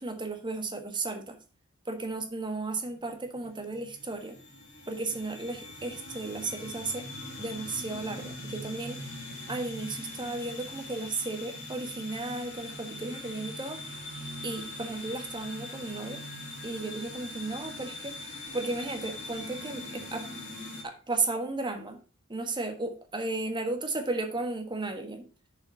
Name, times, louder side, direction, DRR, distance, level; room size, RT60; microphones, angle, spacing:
voice 1, 0.0-1.4 1.8-4.4 4.9-7.0 7.4-9.1 9.5-13.8 14.4-16.2 16.6-18.2 18.5-20.3 20.8-22.0 22.3-25.3, right 3 dB, 25° right, 5 dB, 1.5 m, -34 dB
sound 1, 2.9-20.8, left 1 dB, 55° left, 3.3 m, -42 dB
7.1 x 5.6 x 5.7 m, 0.35 s
head